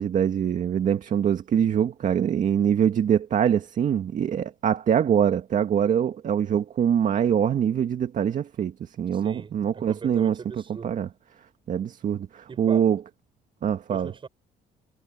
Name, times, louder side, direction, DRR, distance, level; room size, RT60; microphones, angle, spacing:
voice 1, 0.0-10.4 10.8-11.1 11.7-13.0 13.6-14.1, right 8 dB, 50° right, 2.0 m, -24 dB
voice 2, 9.1-10.9 12.5-12.9 13.9-14.3, right 5 dB, 30° right, 5.6 m, -40 dB
cardioid pair, 110°, 17 cm